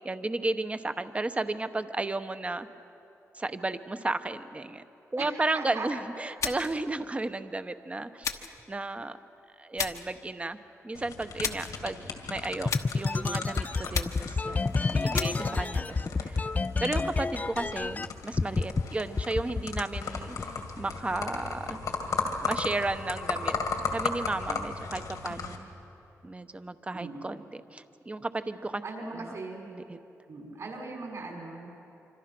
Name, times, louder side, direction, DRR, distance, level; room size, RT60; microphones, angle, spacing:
voice 1, 0.0-2.7 3.3-4.8 5.1-9.2 9.6-10.6 10.8-16.5 16.8-20.4 20.8-21.8 22.4-23.6 23.9-25.7 26.2-28.8 29.7-30.0, right 2 dB, 20° right, 10 dB, 1.0 m, -33 dB
voice 2, 5.2-5.9 26.9-27.3 28.8-29.7 30.3-31.7, right 3 dB, 60° right, 0 dB, 6.1 m, -39 dB
sound 1, 6.4-6.8 8.2-8.6 9.8-10.1 11.4-11.8 12.7-13.1 13.9-14.4 15.1-15.5, left 6 dB, 65° left, 1.1 m, -34 dB
sound 2, 10.9-25.6, left 4 dB, 85° left, 2.3 m, -36 dB
sound 3, 12.6-18.1 18.4-18.8 19.2-20.6, left 4 dB, 25° left, 0.5 m, -29 dB
25.5 x 25.5 x 6.1 m, 2.9 s
cardioid pair, 80°, 6 cm